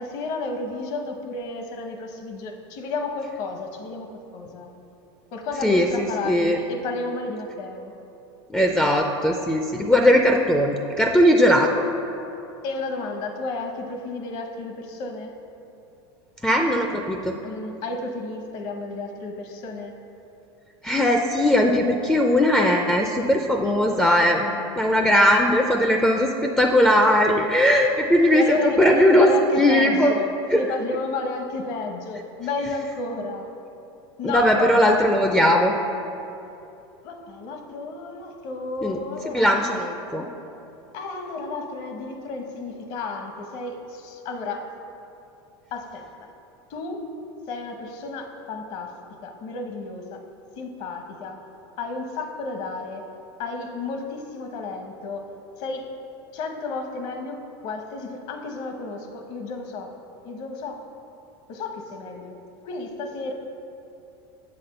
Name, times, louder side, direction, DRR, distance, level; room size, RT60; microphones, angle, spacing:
voice 1, 0.0-4.7 5.3-7.9 12.6-15.3 17.4-20.0 28.3-30.3 30.5-33.5 34.2-35.0 37.0-39.8 40.9-44.8 45.7-46.3 46.7-47.1 47.5-50.2 50.6-51.4 51.8-55.3 55.6-56.0 56.3-59.9 60.2-60.9 61.5-62.4 62.6-63.3, left 3 dB, 55° left, 4 dB, 1.0 m, -32 dB
voice 2, 5.6-6.6 8.5-11.7 16.4-17.4 20.8-28.4 28.8-29.3 29.6-30.1 30.5-30.6 34.2-35.7 38.8-39.0 39.2-40.3, equal, 5° left, 2 dB, 0.4 m, -19 dB
7.1 x 4.2 x 6.7 m, 2.8 s
supercardioid pair, 120°, 14 cm